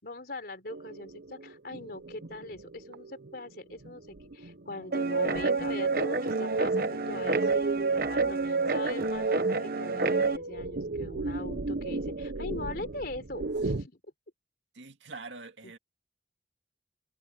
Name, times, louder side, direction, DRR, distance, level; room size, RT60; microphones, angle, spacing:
voice 1, 0.0-14.0 15.6-15.7, left 2 dB, 55° left, 4.1 m, -41 dB
sound 1, 0.7-13.8, right 3 dB, 70° right, 1.0 m, -38 dB
Guitar, 4.9-10.4, right 3 dB, 50° right, 1.2 m, -28 dB
voice 2, 14.7-15.8, right 3 dB, 85° right, 2.1 m, -44 dB
head